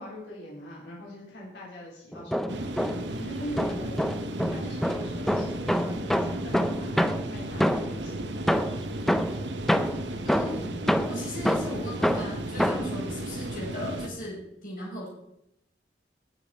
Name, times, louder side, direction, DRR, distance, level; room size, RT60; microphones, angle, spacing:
voice 1, 0.0-2.7 3.2-4.0 4.5-8.4 12.6-12.9, equal, 80° left, -4 dB, 3.9 m, -42 dB
sound 1, 2.1-3.2 3.6-8.1 8.5-13.0, equal, ahead, 0.5 m, -27 dB
sound 2, 2.5-14.1, right 1 dB, 80° right, 1.1 m, -35 dB
voice 2, 10.2-10.8 11.1-15.1, left 1 dB, 50° left, -2 dB, 5.2 m, -37 dB
18.0 x 7.4 x 4.9 m, 0.78 s
head